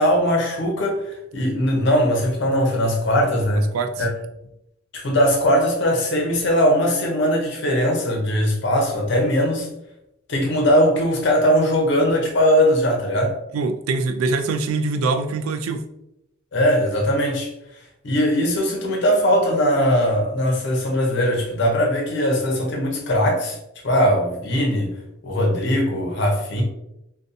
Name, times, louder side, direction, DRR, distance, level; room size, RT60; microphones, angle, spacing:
voice 1, 0.0-3.7 4.0-4.1 4.9-9.7 10.3-13.4 16.5-17.5 18.0-23.6 23.8-24.9 25.2-26.6, equal, 60° left, 1 dB, 0.6 m, -20 dB
voice 2, 3.7-4.1 13.5-15.9, right 3 dB, 80° right, 8 dB, 0.3 m, -23 dB
2.6 x 2.2 x 2.5 m, 0.83 s
head